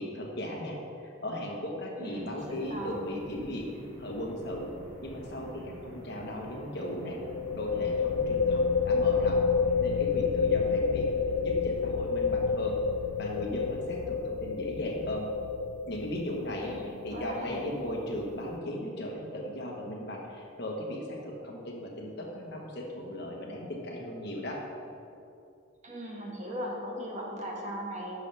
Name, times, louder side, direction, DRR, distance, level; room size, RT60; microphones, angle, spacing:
voice 1, 0.0-3.7 4.0-4.7 5.0-7.2 7.6-9.5 9.8-11.2 11.4-12.8 13.2-15.3 15.9-24.6, left 1 dB, 55° left, -1 dB, 1.3 m, -37 dB
voice 2, 2.0-2.9 16.6-17.6 25.8-28.2, equal, 35° right, -1 dB, 1.3 m, -38 dB
sound 1, 2.0-14.1, equal, 85° right, 2.0 m, -49 dB
sound 2, 4.1-4.4 4.6-4.7 7.2-18.6, left 5 dB, 80° left, 0.3 m, -29 dB
11.0 x 6.8 x 3.4 m, 2.6 s
head